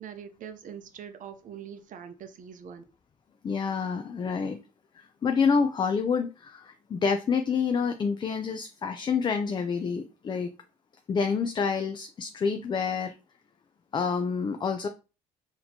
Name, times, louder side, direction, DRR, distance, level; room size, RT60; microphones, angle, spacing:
voice 1, 0.0-2.8, right 8 dB, 50° right, 0.6 m, -43 dB
voice 2, 3.4-4.6 5.0-10.5 11.1-13.2 13.9-14.9, left 5 dB, 25° left, 0.3 m, -28 dB
4.1 x 2.9 x 2.7 m
cardioid pair, 110°, 17 cm